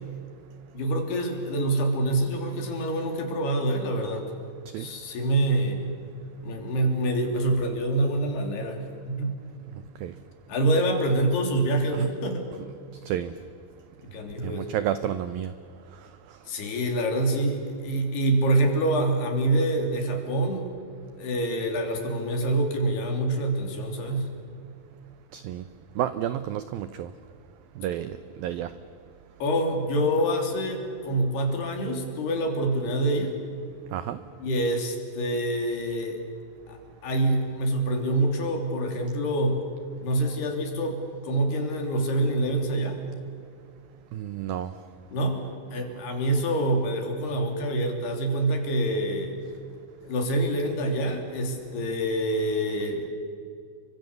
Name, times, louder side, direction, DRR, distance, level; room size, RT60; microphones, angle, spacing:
voice 1, 0.7-4.3 4.8-5.9 6.4-8.8 9.0-9.3 10.5-12.5 14.1-14.7 16.5-20.7 21.2-24.3 29.4-33.3 34.4-36.2 36.7-36.8 37.0-39.6 40.0-43.0 45.1-49.3 50.0-53.0, right 1 dB, 60° left, 3 dB, 5.1 m, -26 dB
voice 2, 14.4-15.5 25.3-25.6 26.0-27.1 27.8-28.7 33.9-34.2 44.1-44.7, right 11 dB, 85° right, 12 dB, 2.1 m, -30 dB
30.0 x 24.5 x 6.9 m, 2.3 s
omnidirectional pair, 5.2 m